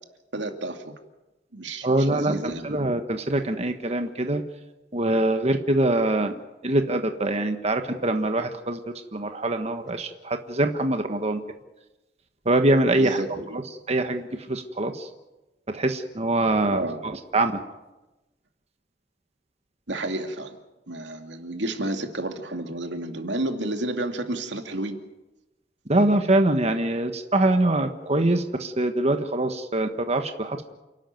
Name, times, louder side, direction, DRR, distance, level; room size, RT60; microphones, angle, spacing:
voice 1, 0.3-0.9 1.5-2.7 13.0-13.6 16.7-17.0 19.9-20.6 20.9-25.0, right 1 dB, 90° right, 5 dB, 2.5 m, -31 dB
voice 2, 1.8-2.3 2.6-4.4 4.9-6.3 6.6-8.8 9.1-11.4 12.4-13.2 13.9-15.1 15.7-16.8 17.3-17.6 25.9-30.7, right 2 dB, 35° right, 6 dB, 1.4 m, -23 dB
28.5 x 12.5 x 9.4 m, 1.0 s
head